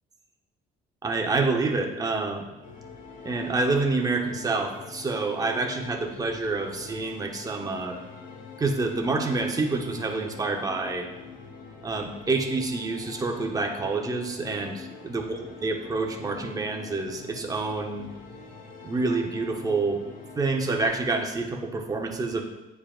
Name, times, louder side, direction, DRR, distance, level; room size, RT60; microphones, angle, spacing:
voice 1, 1.0-2.5 3.2-8.0 8.6-11.1 11.8-18.1 18.8-20.0 20.4-22.4, right 3 dB, 20° right, 2 dB, 0.8 m, -27 dB
sound 1, 2.6-20.9, left 4 dB, 50° left, 1.2 m, -44 dB
8.8 x 4.7 x 2.4 m, 1.0 s
cardioid pair, 110°, 17 cm